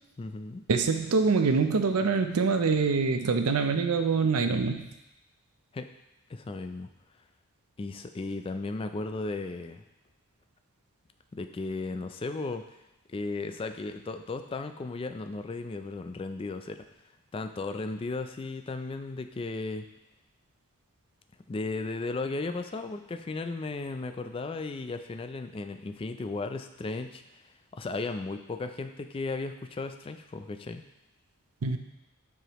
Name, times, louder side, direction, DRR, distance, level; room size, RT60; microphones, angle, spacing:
voice 1, 0.2-0.6 5.7-5.9 6.3-6.9 7.8-9.8 11.3-12.6 13.1-16.8 17.3-19.9 21.5-27.2 27.7-30.8, left 3 dB, 25° left, 7 dB, 0.3 m, -35 dB
voice 2, 0.7-4.8 31.6-31.8, right 4 dB, 85° right, 7 dB, 0.5 m, -25 dB
7.7 x 4.9 x 3.0 m, 0.93 s
head